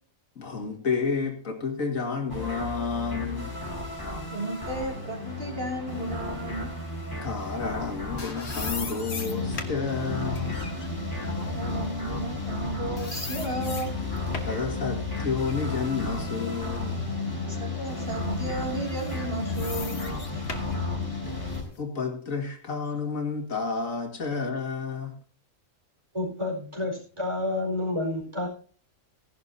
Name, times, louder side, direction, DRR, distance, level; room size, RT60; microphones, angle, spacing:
voice 1, 0.4-3.5 7.2-10.6 14.4-17.1 21.3-21.4 21.8-25.1, left 5 dB, 85° left, 4 dB, 2.4 m, -30 dB
sound 1, 2.3-21.6, left 2 dB, 15° left, 3.2 m, -33 dB
voice 2, 4.3-6.7 11.3-13.9 17.5-20.4 20.7-20.8, right 1 dB, 45° right, 0 dB, 2.9 m, -34 dB
sound 2, 7.7-12.7 13.0-14.7 15.2-17.1 17.6-17.7 18.8-21.8, left 4 dB, 55° left, 1.8 m, -40 dB
voice 3, 26.1-28.5, left 2 dB, 20° right, 0 dB, 4.6 m, -29 dB
16.5 x 11.5 x 2.7 m, 0.40 s
omnidirectional pair, 1.4 m